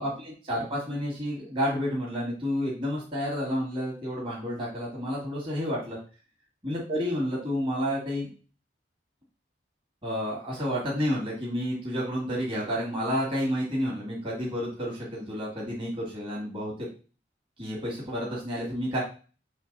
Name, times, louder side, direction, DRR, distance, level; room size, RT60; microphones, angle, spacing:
voice 1, 0.0-6.0 6.6-8.3 10.0-16.9 17.6-19.0, equal, 30° right, -4 dB, 2.1 m, -30 dB
7.1 x 3.3 x 4.1 m, 0.36 s
head